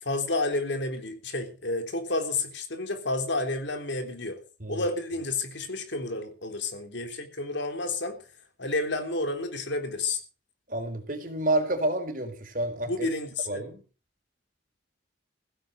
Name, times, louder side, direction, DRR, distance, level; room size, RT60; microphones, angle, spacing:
voice 1, 0.0-4.4 4.7-8.2 8.6-10.2 12.9-13.6, left 2 dB, 70° left, 7 dB, 3.5 m, -30 dB
voice 2, 10.7-13.1 13.5-13.8, right 1 dB, 45° right, 5 dB, 4.1 m, -29 dB
16.0 x 9.3 x 6.7 m, 0.37 s
head